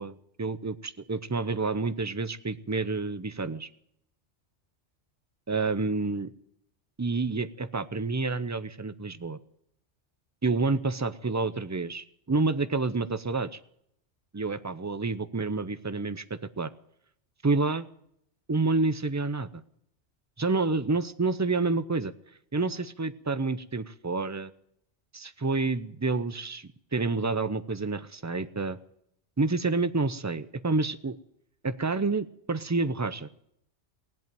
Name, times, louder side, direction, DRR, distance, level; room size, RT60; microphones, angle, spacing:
voice 1, 0.0-3.7 5.5-6.3 7.0-9.4 10.4-13.6 14.3-16.7 17.4-17.9 18.5-19.6 20.4-22.1 22.5-24.5 25.1-28.8 29.4-31.2 31.6-33.3, right 3 dB, 25° right, 13 dB, 0.3 m, -29 dB
19.0 x 8.2 x 9.1 m, 0.72 s
omnidirectional pair, 1.2 m